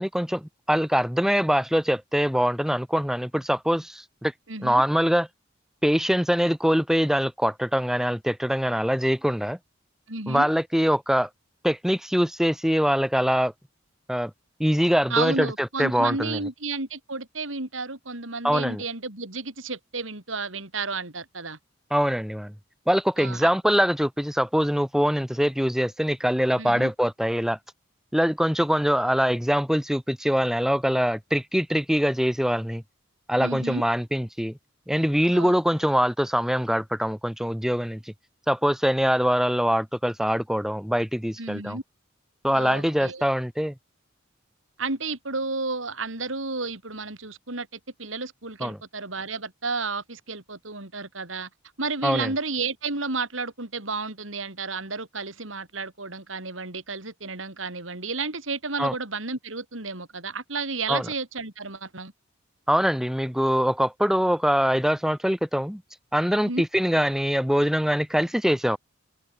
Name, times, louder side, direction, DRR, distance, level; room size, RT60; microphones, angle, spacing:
voice 1, 0.0-4.3 4.6-5.3 5.8-9.6 10.3-11.3 11.6-13.5 14.1-14.3 14.6-16.4 18.4-18.8 21.9-22.5 22.9-27.6 28.1-32.8 33.3-34.6 34.9-38.0 38.5-41.8 42.4-43.7 48.6-48.8 52.0-52.3 58.8-58.9 60.9-61.0 62.7-65.8 66.1-68.8, equal, ahead, 1.7 m, -23 dB
voice 2, 4.5-4.8 10.1-10.5 15.1-21.6 23.2-23.5 26.6-26.9 33.4-33.8 35.3-35.6 41.4-41.8 42.5-43.2 44.8-51.5 51.8-62.1 66.4-66.6, right 3 dB, 85° right, 4.5 m, -32 dB
head